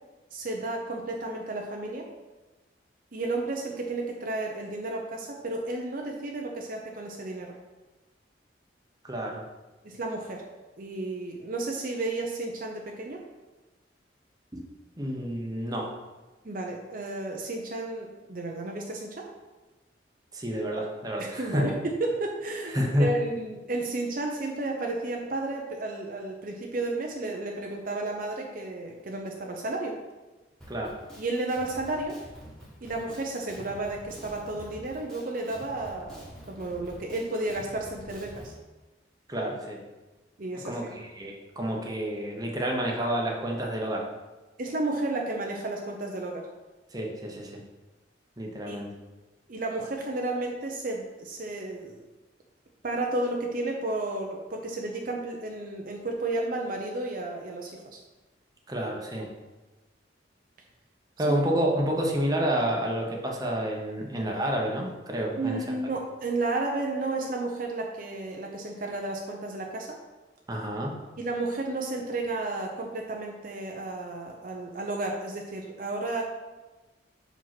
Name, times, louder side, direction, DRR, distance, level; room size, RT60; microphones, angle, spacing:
voice 1, 0.3-2.1 3.1-7.5 9.8-10.4 10.8-13.2 16.4-19.3 21.2-30.0 31.2-32.2 32.8-38.5 40.4-40.8 44.6-46.5 48.7-48.8 49.5-52.0 52.8-58.0 61.3-61.4 65.4-69.9 71.2-76.2, right 2 dB, 45° right, 1 dB, 0.7 m, -32 dB
voice 2, 9.0-9.4 15.0-15.9 20.3-21.7 22.7-23.1 30.7-30.9 39.3-39.8 40.6-44.1 46.9-47.6 48.4-48.9 58.7-59.3 61.2-65.6 70.5-70.9, equal, 20° right, 0 dB, 1.0 m, -29 dB
Drum kit, 30.6-38.5, equal, 5° left, 1.6 m, -47 dB
5.5 x 5.1 x 6.0 m, 1.2 s
head